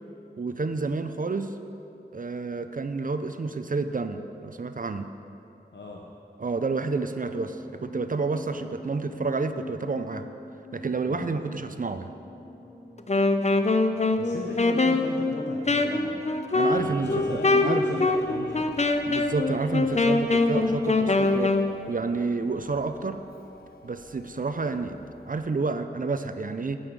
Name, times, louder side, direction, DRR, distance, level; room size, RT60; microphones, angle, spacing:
voice 1, 0.4-1.5 2.1-5.1 6.4-10.3 10.7-12.1 16.5-18.1 19.0-21.5 21.9-23.2 23.8-25.0 25.3-26.8, right 4 dB, 50° right, 9 dB, 0.5 m, -29 dB
voice 2, 5.7-6.0 11.1-11.3 14.1-16.1 16.7-18.7, left 3 dB, 85° left, -1 dB, 0.8 m, -37 dB
sound 1, 6.5-23.1 23.4-23.7, left 1 dB, 5° right, 2.2 m, -46 dB
Wind instrument woodwind instrument, 13.0-21.7, left 2 dB, 40° left, 0.6 m, -24 dB
Clock, 16.6-25.6, left 3 dB, 55° left, 1.0 m, -45 dB
9.1 x 5.5 x 8.2 m, 2.8 s
wide cardioid pair, 40°, 18 cm